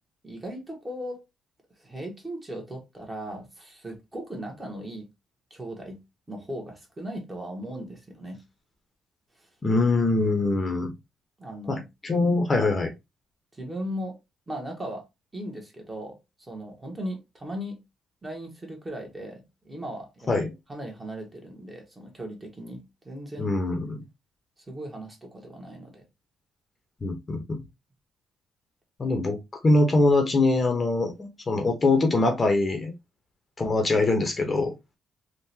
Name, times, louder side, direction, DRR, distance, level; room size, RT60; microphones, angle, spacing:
voice 1, 0.2-1.2 1.8-5.1 5.5-6.0 6.3-8.4 11.4-11.8 13.5-14.2 14.5-15.0 15.3-17.8 18.2-20.4 20.7-23.5 24.7-26.0, equal, 20° right, 1.3 m, -37 dB
voice 2, 9.6-10.9 11.7-12.9 20.3-20.5 23.4-24.0 27.0-27.6 29.0-29.4 29.6-32.9 33.6-34.7, left 2 dB, 30° left, 0.9 m, -23 dB
3.7 x 2.4 x 2.8 m
cardioid pair, 90°, 0 cm